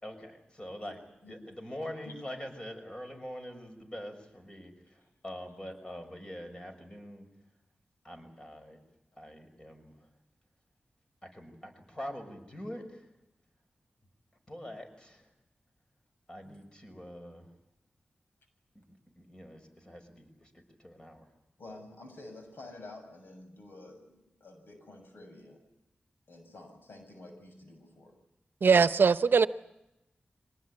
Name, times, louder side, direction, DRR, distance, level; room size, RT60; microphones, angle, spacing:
voice 1, 0.0-7.3 8.0-8.8 9.2-10.0 11.2-13.1 14.5-15.3 16.3-17.5 18.7-18.8 19.2-20.5 20.8-21.3, equal, 25° left, 5 dB, 5.7 m, -44 dB
voice 2, 21.6-25.6 26.3-28.2, left 2 dB, 80° left, 5 dB, 6.9 m, -50 dB
voice 3, 28.6-29.5, right 5 dB, 75° right, 13 dB, 0.8 m, -21 dB
25.0 x 19.0 x 9.7 m, 0.91 s
wide cardioid pair, 65°, 4 cm